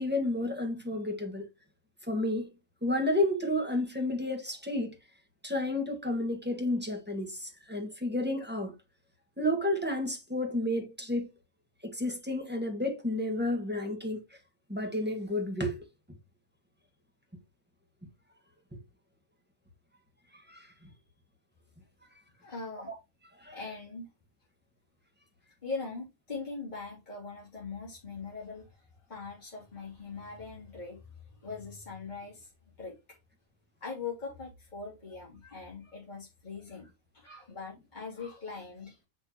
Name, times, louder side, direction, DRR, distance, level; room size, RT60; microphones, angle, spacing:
voice 1, 0.0-1.5 2.0-2.5 2.8-4.9 5.4-8.7 9.4-11.3 11.8-14.2 14.7-15.8 20.5-20.7 23.4-23.6, left 1 dB, 5° right, 1.9 m, -31 dB
voice 2, 22.4-22.9 23.5-24.1 25.6-31.0 31.4-32.5 32.8-33.2 33.8-36.9 37.1-39.0, left 4 dB, 35° left, 3.3 m, -41 dB
7.4 x 6.4 x 3.0 m
omnidirectional pair, 1.4 m